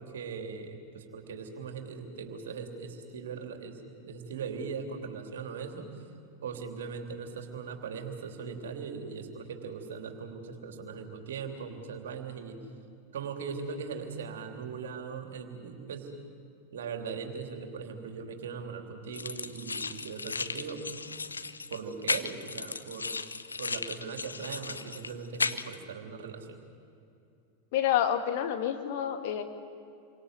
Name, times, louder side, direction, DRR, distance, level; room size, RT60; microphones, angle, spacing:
voice 1, 0.0-5.9 6.4-12.6 13.1-16.1 16.7-20.9 21.7-23.1 23.6-26.6, right 5 dB, 60° right, 4 dB, 3.3 m, -40 dB
sound 1, 19.1-25.8, left 4 dB, 75° left, 0.8 m, -35 dB
voice 2, 27.7-29.4, left 10 dB, 50° left, 6 dB, 2.1 m, -28 dB
29.5 x 24.5 x 7.8 m, 2.6 s
figure-of-eight pair, 90°, 0 cm